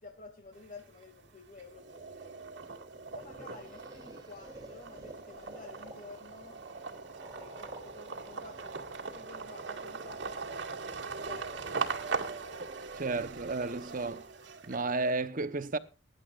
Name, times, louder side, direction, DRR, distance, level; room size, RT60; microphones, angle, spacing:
voice 1, 0.0-2.9 3.1-6.6 7.3-11.0 11.3-12.6 14.9-15.0, left 3 dB, 45° left, 2.5 m, -52 dB
sound 1, 0.5-1.2 1.6-15.1, right 4 dB, 70° right, 2.1 m, -40 dB
sound 2, 2.9-9.8, right 1 dB, 20° right, 3.3 m, -52 dB
voice 2, 12.9-14.3 14.7-15.8, right 3 dB, 50° right, 1.0 m, -32 dB
23.0 x 11.0 x 2.5 m
head